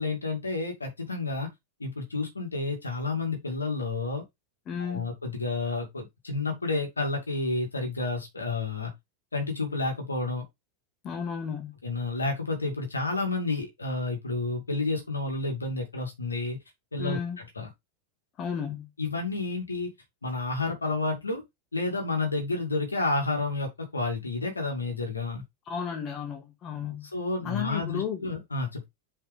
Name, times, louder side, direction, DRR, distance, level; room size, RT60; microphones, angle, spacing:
voice 1, 0.0-1.5 1.8-4.2 4.8-8.9 9.3-10.4 11.8-16.6 16.9-17.2 17.6-17.7 19.0-19.9 20.2-21.4 21.7-25.4 27.1-28.8, left 3 dB, 80° left, 2.4 m, -30 dB
voice 2, 4.7-5.1 11.0-11.8 17.0-17.4 18.4-18.9 25.7-27.1 27.4-28.3, left 7 dB, 30° left, 1.9 m, -33 dB
5.7 x 5.2 x 3.5 m
figure-of-eight pair, 90°, 0 cm